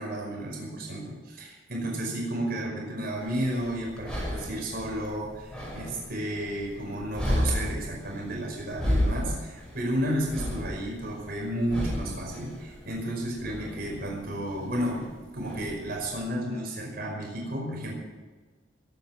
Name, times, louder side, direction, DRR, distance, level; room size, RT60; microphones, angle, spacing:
voice 1, 0.0-18.0, right 1 dB, 55° right, -2 dB, 5.5 m, -32 dB
sound 1, 3.2-16.2, equal, 5° left, 5.9 m, -33 dB
21.5 x 9.5 x 6.1 m, 1.3 s
head